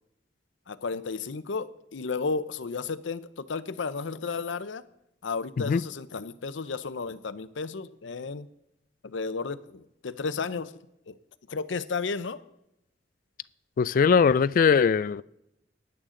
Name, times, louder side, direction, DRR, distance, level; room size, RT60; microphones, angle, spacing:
voice 1, 0.7-4.8 5.2-8.5 9.0-10.7 11.1-11.2 11.5-12.4, left 4 dB, 80° left, 0.6 m, -33 dB
voice 2, 13.8-15.2, left 6 dB, 50° left, 0.3 m, -21 dB
15.5 x 11.0 x 3.8 m
head